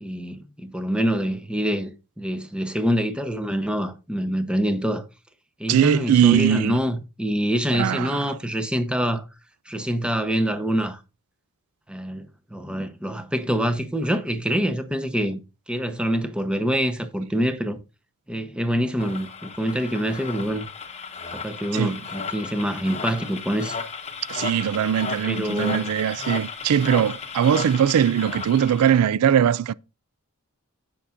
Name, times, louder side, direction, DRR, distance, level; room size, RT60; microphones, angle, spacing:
voice 1, 0.0-5.0 5.6-9.2 9.7-11.0 11.9-15.4 15.7-17.8 18.3-20.7 21.3-23.8 25.3-25.9, equal, 5° right, 0.8 m, -25 dB
voice 2, 5.7-6.8 7.7-8.3 21.7-22.0 24.3-29.7, right 9 dB, 80° right, 0.3 m, -20 dB
sound 1, 19.0-29.0, left 5 dB, 30° left, 1.0 m, -34 dB
16.5 x 5.8 x 2.5 m
head